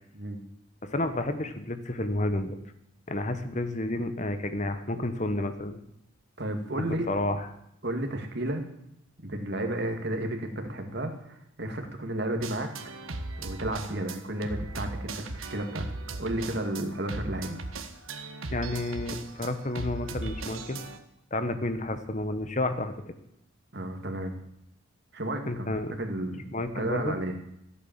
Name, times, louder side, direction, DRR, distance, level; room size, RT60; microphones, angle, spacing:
voice 1, 0.8-2.6 3.1-5.8 7.1-7.5 18.5-20.8 21.3-22.9 25.4-25.9 26.5-27.2, left 2 dB, 35° left, 10 dB, 1.1 m, -30 dB
voice 2, 6.4-7.1 7.8-8.6 9.2-12.9 13.4-15.9 16.2-17.6 23.7-24.3 25.1-27.4, right 1 dB, 55° right, 4 dB, 2.2 m, -32 dB
sound 1, 12.4-21.0, right 2 dB, 85° right, 1.4 m, -38 dB
15.0 x 8.4 x 7.4 m, 0.77 s
head